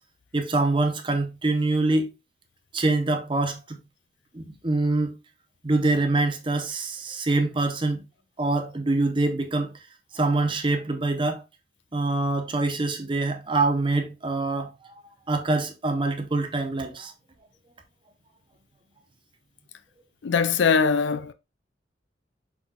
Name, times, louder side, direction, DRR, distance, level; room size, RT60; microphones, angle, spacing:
voice 1, 0.3-2.1 2.7-3.8 4.3-5.1 5.6-8.0 8.4-9.7 10.1-11.4 11.9-14.7 15.3-17.1, right 2 dB, 25° right, 0.7 m, -25 dB
voice 2, 20.2-21.3, left 5 dB, 90° left, 0.4 m, -21 dB
5.9 x 3.8 x 2.3 m
head